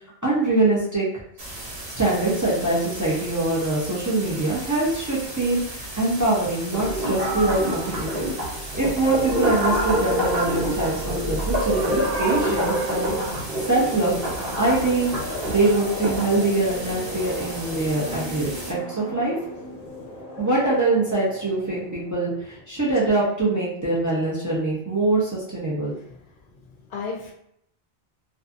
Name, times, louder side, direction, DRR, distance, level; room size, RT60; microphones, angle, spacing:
voice 1, 0.2-1.1 2.0-5.6 6.0-8.3 8.7-13.2 13.7-14.1 14.5-15.1 15.5-19.3 20.4-25.9, right 2 dB, 25° right, -6 dB, 0.4 m, -23 dB
sound 1, 1.4-18.7, right 1 dB, 85° right, 1.1 m, -37 dB
sound 2, 6.7-16.3, equal, 65° right, 1.0 m, -26 dB
sound 3, 9.0-22.3, left 1 dB, 20° left, 0.7 m, -38 dB
voice 2, 19.8-20.4 26.0-26.2 26.9-27.3, left 4 dB, 60° left, 0 dB, 0.7 m, -36 dB
2.5 x 2.4 x 2.4 m, 0.73 s
omnidirectional pair, 1.0 m